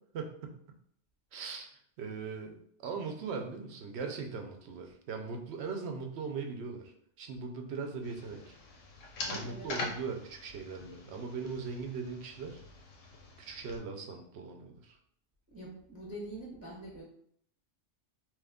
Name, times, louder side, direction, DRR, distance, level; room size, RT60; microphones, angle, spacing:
voice 1, 0.1-0.6 1.3-8.5 9.3-12.6 13.4-15.0, right 5 dB, 65° right, 4 dB, 0.8 m, -40 dB
sound 1, 8.0-13.8, left 3 dB, 85° left, 1.0 m, -44 dB
voice 2, 9.3-9.7 15.5-17.0, right 1 dB, 15° right, -4 dB, 0.7 m, -44 dB
3.0 x 2.3 x 3.4 m, 0.65 s
omnidirectional pair, 1.3 m